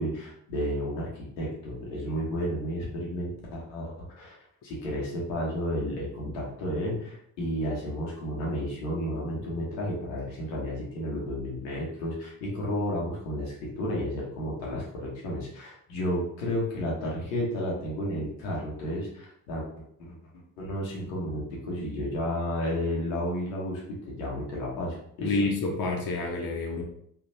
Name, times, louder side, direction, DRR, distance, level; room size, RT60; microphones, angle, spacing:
voice 1, 0.0-4.4 4.6-19.7 20.0-25.4, equal, 85° left, -4 dB, 1.0 m, -32 dB
voice 2, 25.2-26.8, left 3 dB, 45° left, 1 dB, 0.9 m, -28 dB
3.3 x 2.5 x 2.5 m, 0.69 s
hypercardioid pair, 45°, 50 cm